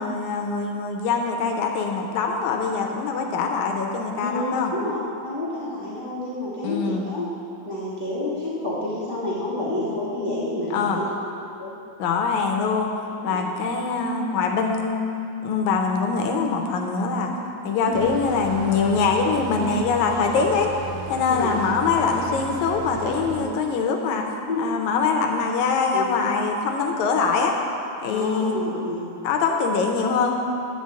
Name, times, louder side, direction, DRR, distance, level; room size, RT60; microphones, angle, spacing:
voice 1, 0.0-4.7 6.6-7.1 10.7-11.1 12.0-12.9 13.2-15.1 15.4-17.3 17.6-20.7 21.1-24.2 24.6-27.5 28.0-28.6 29.2-30.3, left 5 dB, 75° left, 2 dB, 2.0 m, -23 dB
voice 2, 4.2-7.3 7.6-11.1 11.6-11.8 13.3-13.4 17.9-18.0 21.3-21.5 23.3-23.4 24.5-24.6 25.9-26.0 28.0-29.1, left 1 dB, 60° left, -9 dB, 0.5 m, -29 dB
sound 1, 17.9-23.4, right 5 dB, 75° right, 2.0 m, -35 dB
11.0 x 4.0 x 7.4 m, 2.8 s
omnidirectional pair, 3.7 m